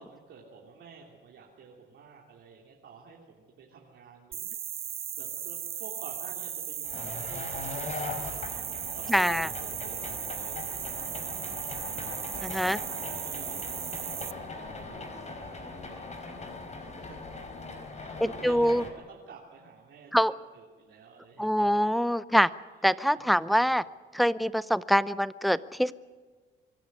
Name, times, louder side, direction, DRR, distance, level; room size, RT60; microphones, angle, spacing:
voice 1, 0.0-4.5 5.2-11.6 12.3-16.5 17.0-17.4 17.9-21.6 23.1-23.4 23.6-23.7, right 5 dB, 75° right, -3 dB, 3.1 m, -50 dB
sound 1, 4.3-14.3, right 9 dB, 50° right, 0.8 m, -36 dB
sound 2, 6.8-18.9, left 3 dB, 35° left, 4.3 m, -40 dB
voice 2, 9.1-9.5 12.4-12.8 18.2-18.8 20.1-20.3 21.4-22.5 22.8-23.8 24.1-25.9, equal, ahead, 16 dB, 0.7 m, -24 dB
25.0 x 12.0 x 9.8 m, 1.5 s
cardioid pair, 90°, 20 cm